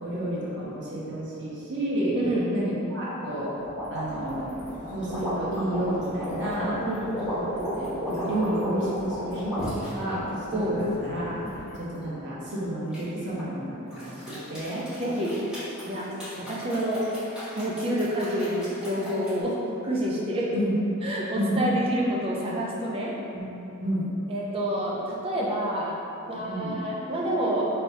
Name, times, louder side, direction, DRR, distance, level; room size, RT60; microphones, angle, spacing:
voice 1, 0.0-2.2 2.5-3.5 3.9-4.5 4.9-6.8 7.3-7.5 7.8-11.4 11.7-14.8 20.5-20.7 21.3-21.6 23.3-23.5 23.8-24.1 26.3-26.7, right 1 dB, 55° right, -7 dB, 0.7 m, -31 dB
sound 1, 3.6-9.9 10.5-11.8 12.9-13.5 13.9-19.3, equal, 5° right, 1.3 m, -35 dB
sound 2, 4.0-11.6, equal, 75° left, 0.5 m, -42 dB
voice 2, 15.0-15.3 15.9-16.0 16.4-17.0 17.6-19.6 19.8-20.5 21.0-23.1 24.3-25.9 26.3-27.7, right 1 dB, 25° right, -4 dB, 0.4 m, -28 dB
3.2 x 2.9 x 2.7 m, 3.0 s
head